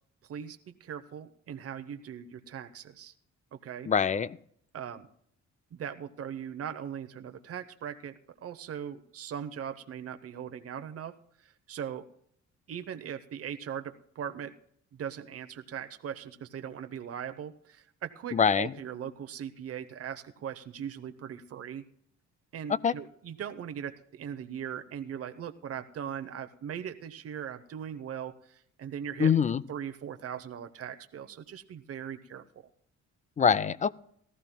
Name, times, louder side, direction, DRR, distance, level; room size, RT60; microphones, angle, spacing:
voice 1, 0.3-3.1 3.6-3.9 4.7-5.1 5.7-11.1 11.4-12.1 12.7-14.5 14.9-21.8 22.5-29.3 29.7-32.7, right 8 dB, 50° right, 9 dB, 0.9 m, -39 dB
voice 2, 3.9-4.4 18.3-18.7 22.8-22.9 29.2-29.6 33.4-33.9, left 7 dB, 25° left, 19 dB, 0.4 m, -24 dB
18.5 x 13.5 x 2.3 m, 0.67 s
cardioid pair, 90°, 30 cm